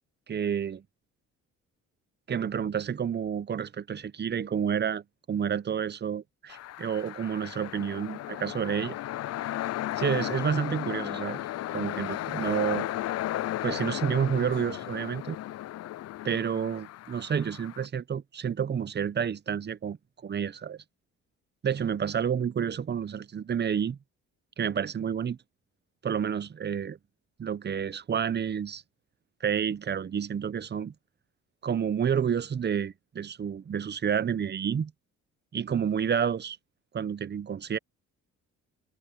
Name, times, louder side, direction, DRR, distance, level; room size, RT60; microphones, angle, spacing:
voice 1, 0.3-0.8 2.3-9.0 10.0-11.4 11.7-12.9 13.6-15.4 16.2-20.0 20.2-20.8 21.6-24.0 24.6-25.4 26.0-27.0 27.4-28.8 29.4-30.9 31.6-34.9 35.5-36.6 36.9-37.8, right 7 dB, 35° right, 0.8 m, -29 dB
sound 1, 6.5-17.9, left 14 dB, 55° left, 0.5 m, -35 dB
cardioid pair, 90°, 30 cm